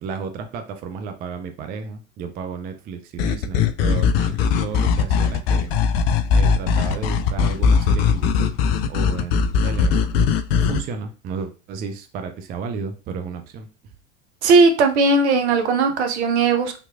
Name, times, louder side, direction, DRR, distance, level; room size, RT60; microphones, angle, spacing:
voice 1, 0.0-5.7 6.3-8.5 8.9-10.1 10.6-13.7, right 5 dB, 25° right, 7 dB, 0.4 m, -32 dB
sound 1, 3.2-10.8, left 6 dB, 55° left, 0.4 m, -19 dB
voice 2, 14.4-16.8, right 3 dB, 65° right, 6 dB, 0.7 m, -17 dB
3.5 x 2.9 x 2.3 m, 0.33 s
figure-of-eight pair, 80°, 36 cm